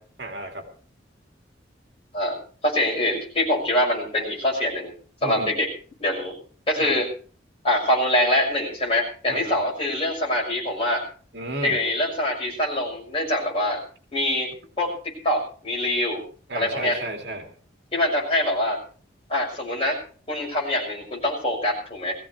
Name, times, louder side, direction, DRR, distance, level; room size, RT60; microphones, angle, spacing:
voice 1, 0.2-0.7 5.2-5.5 6.8-7.0 9.3-9.6 11.3-11.8 16.5-17.5, right 1 dB, 65° right, 3 dB, 2.5 m, -33 dB
voice 2, 2.6-4.9 5.2-5.7 6.0-6.3 6.7-7.1 7.6-11.0 11.6-13.8 14.1-14.5 14.8-14.9 15.2-16.2 16.5-17.0 17.9-18.8 19.3-20.0 20.3-22.2, left 1 dB, 30° left, -2 dB, 6.3 m, -24 dB
20.0 x 15.5 x 3.3 m, 0.41 s
head